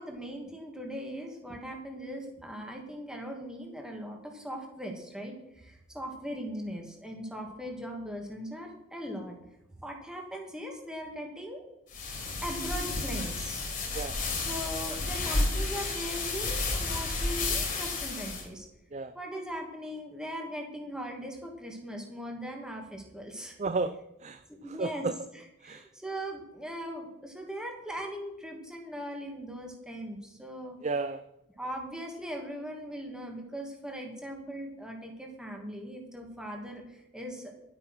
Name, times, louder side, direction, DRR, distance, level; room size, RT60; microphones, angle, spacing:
voice 1, 0.0-9.4 9.8-11.6 12.4-13.7 14.5-18.7 19.1-23.6 24.5-25.1 25.3-30.8 31.5-37.5, equal, 5° right, 1 dB, 2.2 m, -39 dB
sound 1, 11.9-18.4, left 3 dB, 45° left, 3.6 m, -31 dB
voice 2, 23.6-24.4 24.8-25.1 25.6-25.9 30.8-31.2, right 3 dB, 35° right, 10 dB, 0.5 m, -32 dB
12.0 x 8.7 x 6.2 m, 0.90 s
head